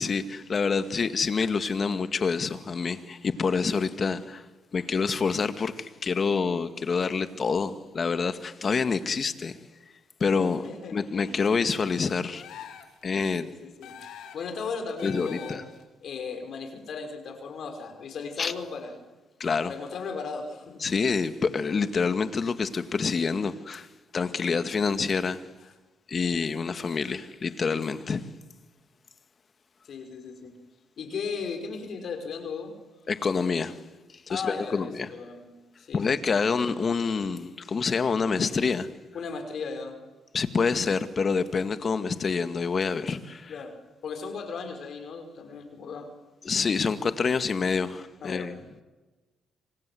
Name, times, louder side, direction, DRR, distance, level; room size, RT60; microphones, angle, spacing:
voice 1, 0.0-4.4 4.7-9.6 10.2-10.6 10.9-12.4 13.0-13.5 15.0-15.6 18.4-18.5 19.4-19.7 20.8-23.9 24.1-25.4 26.1-28.3 33.1-33.8 34.3-35.1 35.9-38.9 40.3-43.5 46.5-48.6, left 5 dB, 40° left, 2.0 m, -27 dB
voice 2, 10.5-11.5 13.3-15.6 16.0-19.0 19.6-20.8 29.8-30.5 31.0-32.8 34.3-35.5 35.8-36.4 39.1-40.0 43.5-43.7 44.0-46.1 48.2-48.5, left 5 dB, 60° left, 5.7 m, -36 dB
sound 1, 12.3-13.0 13.8-14.5 15.0-15.8, left 9 dB, 85° left, 3.5 m, -44 dB
27.5 x 25.5 x 7.9 m
cardioid pair, 90°, 0 cm